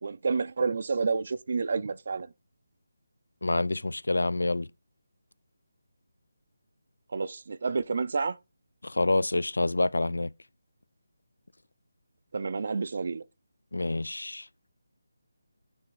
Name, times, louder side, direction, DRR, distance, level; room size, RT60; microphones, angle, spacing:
voice 1, 0.0-2.3 7.1-8.4 12.3-13.2, right 4 dB, 55° right, 0.4 m, -29 dB
voice 2, 3.4-4.7 8.8-10.3 13.7-14.4, left 2 dB, 85° left, 0.4 m, -27 dB
9.5 x 3.4 x 3.9 m
figure-of-eight pair, 160°, 0 cm